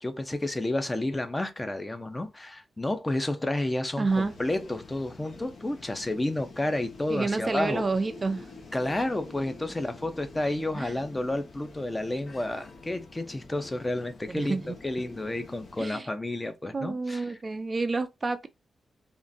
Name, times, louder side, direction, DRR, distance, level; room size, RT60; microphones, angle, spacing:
voice 1, 0.0-7.8 8.7-17.4, left 1 dB, 15° left, 0.6 m, -31 dB
sound 1, 4.0-15.9, left 3 dB, 55° left, 0.9 m, -47 dB
voice 2, 4.0-4.3 7.1-8.5 10.7-10.9 14.3-14.8 15.8-16.1 16.7-18.5, right 3 dB, 30° right, 0.4 m, -29 dB
3.6 x 2.5 x 2.6 m
wide cardioid pair, 125°, 0 cm